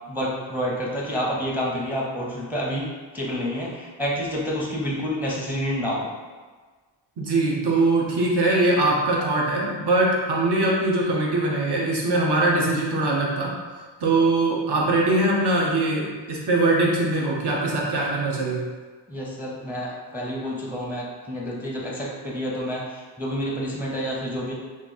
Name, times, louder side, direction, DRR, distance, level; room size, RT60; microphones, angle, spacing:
voice 1, 0.1-2.9 3.1-6.1 19.1-24.5, equal, 5° right, -3 dB, 0.7 m, -28 dB
voice 2, 7.2-13.6 14.0-18.6, right 2 dB, 60° right, -2 dB, 0.9 m, -22 dB
3.1 x 2.6 x 4.0 m, 1.4 s
wide cardioid pair, 105°, 45 cm